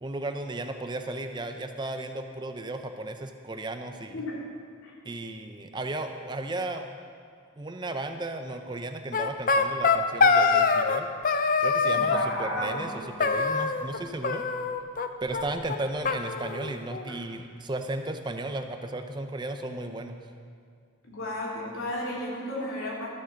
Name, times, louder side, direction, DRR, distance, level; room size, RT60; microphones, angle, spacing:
voice 1, 0.0-4.2 5.0-6.9 7.6-11.1 11.6-14.4 15.2-20.2, right 2 dB, 20° right, 6 dB, 0.5 m, -35 dB
sound 1, 9.1-11.0 11.2-12.3 13.2-14.0 14.2-15.1 15.3-15.4 15.7-15.8 16.0-17.1, left 4 dB, 40° left, 0.6 m, -24 dB
voice 2, 11.9-12.9 17.1-17.2 21.1-23.1, left 1 dB, 90° left, -5 dB, 3.3 m, -33 dB
13.0 x 7.7 x 6.3 m, 2.2 s
head